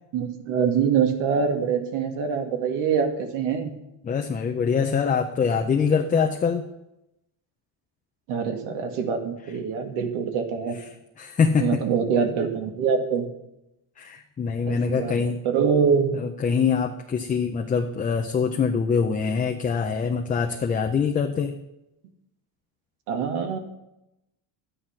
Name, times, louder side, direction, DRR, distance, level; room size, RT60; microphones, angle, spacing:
voice 1, 0.1-3.7 8.3-10.8 11.6-13.3 14.7-16.1 23.1-23.6, right 6 dB, 80° right, 5 dB, 2.1 m, -24 dB
voice 2, 4.0-6.6 11.2-11.8 14.0-15.4 16.1-21.5, left 6 dB, 20° left, 4 dB, 0.5 m, -24 dB
12.5 x 9.9 x 5.8 m, 0.89 s
cardioid pair, 165°, 48 cm